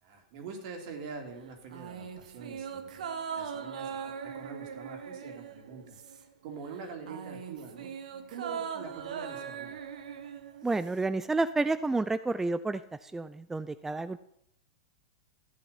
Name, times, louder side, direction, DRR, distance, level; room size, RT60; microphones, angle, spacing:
voice 1, 0.0-3.1 3.3-6.0 6.4-7.9 8.3-9.8, right 5 dB, 60° right, 2 dB, 3.4 m, -44 dB
sound 1, 1.7-6.5 6.7-11.1 11.4-11.5, right 7 dB, 75° right, 1.2 m, -40 dB
voice 2, 10.6-14.2, right 3 dB, 10° right, 13 dB, 0.4 m, -30 dB
13.5 x 8.7 x 5.6 m, 0.74 s
hypercardioid pair, 110°, 4 cm